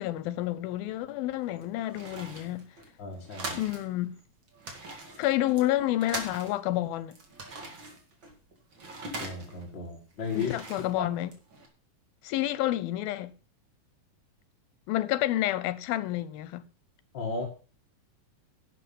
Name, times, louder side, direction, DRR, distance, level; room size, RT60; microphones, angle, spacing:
voice 1, 0.0-2.7 3.5-4.2 5.2-7.2 10.4-11.3 12.2-13.3 14.9-16.6, left 14 dB, 85° left, 2.6 m, -29 dB
sound 1, 1.3-3.9 4.2-4.3 4.5-6.8 7.1-9.7 10.1-11.7, right 2 dB, 40° right, 2.5 m, -42 dB
voice 2, 3.0-3.6 9.2-10.5 17.1-17.4, left 5 dB, 40° left, 1.9 m, -34 dB
11.5 x 7.9 x 5.4 m
omnidirectional pair, 4.2 m